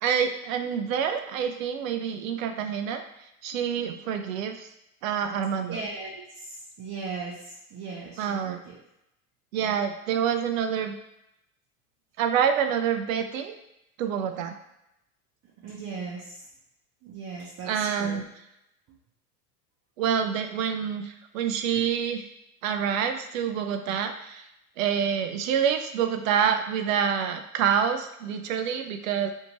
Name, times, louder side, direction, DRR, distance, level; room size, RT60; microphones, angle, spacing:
voice 1, 0.0-3.0 3.4-4.7 5.0-5.8 8.2-8.6 9.5-11.0 12.2-13.5 14.0-14.5 17.7-18.2 20.0-22.3 22.6-24.4 24.8-29.3, right 8 dB, 65° right, 7 dB, 0.5 m, -27 dB
voice 2, 5.7-8.7 9.6-9.7 15.6-16.4 17.0-18.2, right 4 dB, 35° right, -5 dB, 0.7 m, -38 dB
2.7 x 2.5 x 2.9 m, 0.85 s
figure-of-eight pair, 75°, 45 cm